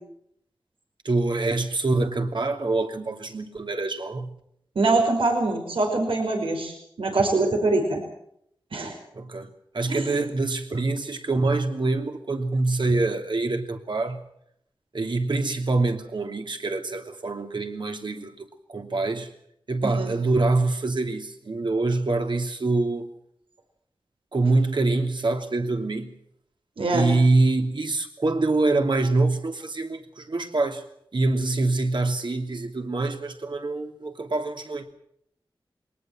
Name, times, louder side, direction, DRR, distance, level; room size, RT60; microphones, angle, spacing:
voice 1, 1.0-4.3 9.1-9.5 9.7-14.2 14.9-19.3 19.7-23.1 24.3-26.1 26.9-30.8 31.1-34.9, right 3 dB, 60° right, 4 dB, 2.9 m, -25 dB
voice 2, 4.8-6.7 7.0-8.0 8.7-8.9 9.9-10.2 19.8-20.1 26.8-27.1, right 2 dB, 90° right, 3 dB, 5.4 m, -23 dB
22.5 x 19.0 x 7.6 m, 0.72 s
wide cardioid pair, 70°, 9 cm